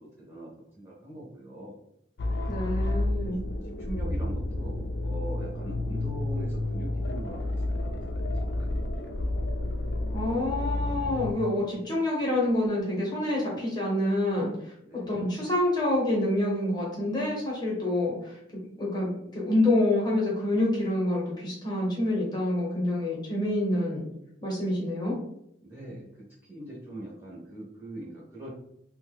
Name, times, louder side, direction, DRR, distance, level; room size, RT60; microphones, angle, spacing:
voice 1, 0.0-1.8 2.4-2.6 3.3-3.4 3.6-9.2 14.8-15.1 25.6-28.5, right 1 dB, 10° right, -6 dB, 0.9 m, -42 dB
sound 1, 2.2-11.3, left 2 dB, 65° left, 0.4 m, -30 dB
voice 2, 2.5-3.4 10.1-14.5 15.1-24.0 24.4-25.1, left 1 dB, 25° left, -5 dB, 0.9 m, -27 dB
2.8 x 2.1 x 3.6 m, 0.75 s
head